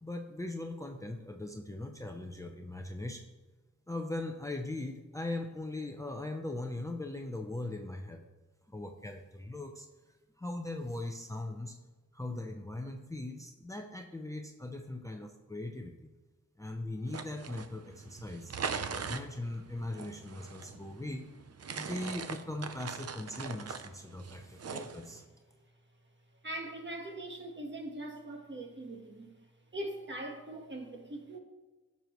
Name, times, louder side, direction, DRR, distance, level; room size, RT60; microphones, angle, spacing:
voice 1, 0.0-3.3 3.9-8.2 8.7-9.9 10.4-11.8 12.1-16.1 16.6-21.3 21.8-25.2, left 2 dB, 10° left, 0.7 m, -40 dB
sound 1, 17.1-25.2, right 5 dB, 50° right, 0.7 m, -42 dB
voice 2, 26.4-29.3 29.7-31.4, right 1 dB, 35° right, 1.5 m, -41 dB
16.0 x 6.8 x 3.1 m
wide cardioid pair, 130°, 31 cm